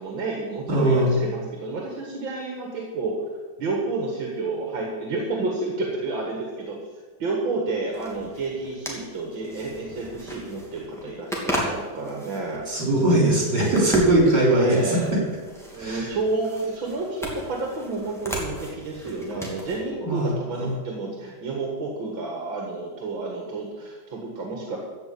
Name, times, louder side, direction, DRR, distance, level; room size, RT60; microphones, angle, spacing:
voice 1, 0.0-3.2 3.6-6.8 7.2-12.6 14.6-15.2 15.7-24.8, right 3 dB, 85° right, -1 dB, 2.5 m, -30 dB
voice 2, 0.7-1.2 12.7-15.0 15.8-16.1 19.9-20.3 20.6-20.7, right 1 dB, 60° right, -3 dB, 4.9 m, -20 dB
sound 1, 7.9-19.9, equal, ahead, 2.4 m, -36 dB
15.0 x 5.9 x 8.6 m, 1.4 s
omnidirectional pair, 2.1 m